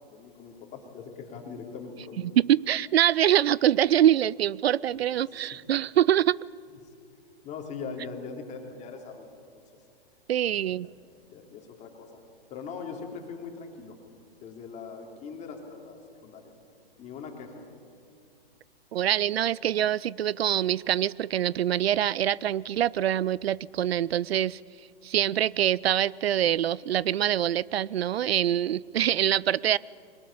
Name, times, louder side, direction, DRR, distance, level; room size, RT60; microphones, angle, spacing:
voice 1, 0.1-2.4 5.4-5.6 7.4-9.3 10.8-10.9 11.3-12.2 12.5-14.0 14.4-16.4 17.0-17.7, left 5 dB, 25° left, 2 dB, 3.3 m, -41 dB
voice 2, 2.2-6.4 10.3-10.9 18.9-24.6 25.0-29.8, right 11 dB, 80° right, 23 dB, 0.5 m, -24 dB
22.0 x 19.0 x 8.7 m, 2.5 s
hypercardioid pair, 135°, 31 cm